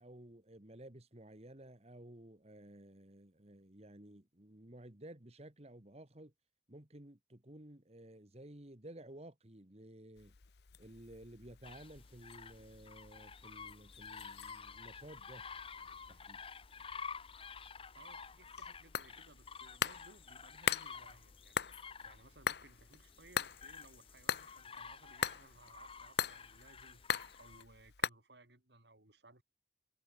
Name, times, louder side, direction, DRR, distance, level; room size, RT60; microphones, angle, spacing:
voice 1, 0.0-6.3 6.7-10.3 10.8-15.4 16.1-16.4, right 1 dB, 35° right, 2.0 m, -54 dB
sound 1, 10.2-28.1, left 7 dB, 65° left, 0.8 m, -43 dB
sound 2, 11.6-27.6, left 6 dB, 30° left, 1.4 m, -51 dB
voice 2, 17.9-21.7 22.0-27.0 27.4-29.4, right 2 dB, 75° right, 4.6 m, -61 dB
head